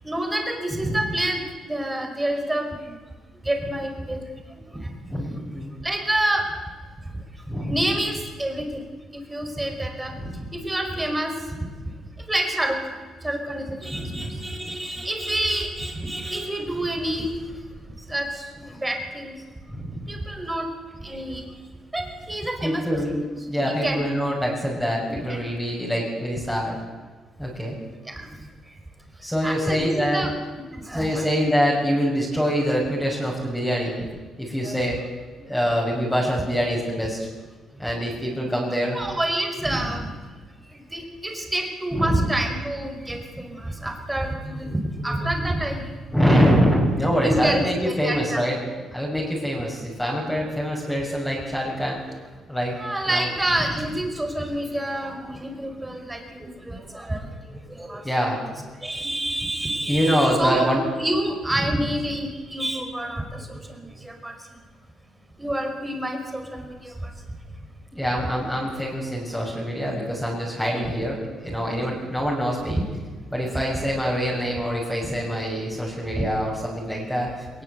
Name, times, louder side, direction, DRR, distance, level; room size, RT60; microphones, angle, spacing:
voice 1, 0.0-1.4 1.7-2.8 3.4-4.2 4.6-4.9 5.8-6.4 7.7-8.1 8.4-8.7 9.1-10.1 10.5-11.3 12.3-17.3 18.1-19.4 20.1-20.7 21.0-21.4 21.9-23.1 23.5-24.0 25.1-25.4 28.1-28.3 29.4-31.3 33.3-33.4 34.6-34.8 38.9-40.1 40.9-45.9 47.2-48.4 52.8-57.2 57.5-58.0 58.8-60.7 61.0-63.6 64.0-64.3 65.4-66.9 70.6-70.8 72.7-72.8 76.1-76.2, right 1 dB, 15° right, 4 dB, 5.2 m, -28 dB
voice 2, 5.1-5.7 7.5-7.8 10.1-10.3 13.9-14.4 19.7-20.0 22.6-23.1 23.5-26.8 27.4-27.7 29.2-30.2 30.9-34.1 34.4-35.0 35.4-37.3 37.8-39.0 39.7-39.9 41.9-42.2 46.1-52.0 52.5-52.8 53.1-53.3 58.0-58.4 59.0-60.8 61.6-61.8 67.9-72.8 73.3-77.6, equal, 5° left, -4 dB, 6.3 m, -25 dB
20.5 x 20.0 x 8.1 m, 1.4 s
cardioid pair, 90°, 0 cm